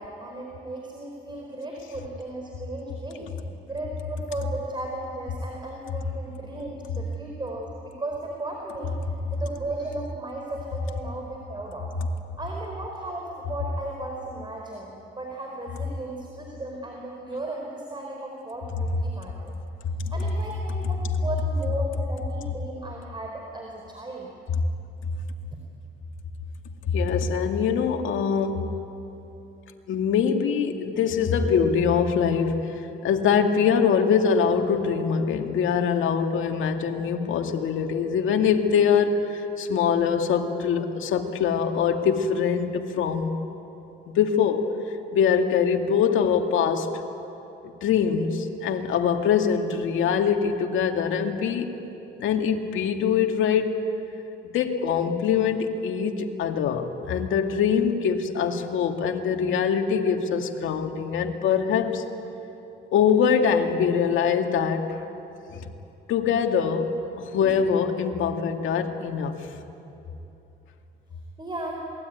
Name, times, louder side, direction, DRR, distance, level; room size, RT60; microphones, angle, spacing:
voice 1, 0.0-3.3 3.7-8.9 9.3-11.9 12.4-19.5 20.1-24.3 71.4-71.8, right 2 dB, 25° right, 0 dB, 4.4 m, -35 dB
voice 2, 26.9-28.7 29.9-32.6 33.0-43.4 44.1-44.7 45.1-46.9 47.6-51.8 52.2-53.7 54.4-62.0 62.9-64.9 65.5-65.7 66.1-66.9 67.2-69.3, left 7 dB, 80° left, 4 dB, 2.2 m, -23 dB
27.5 x 20.5 x 9.5 m, 3.0 s
cardioid pair, 90°, 20 cm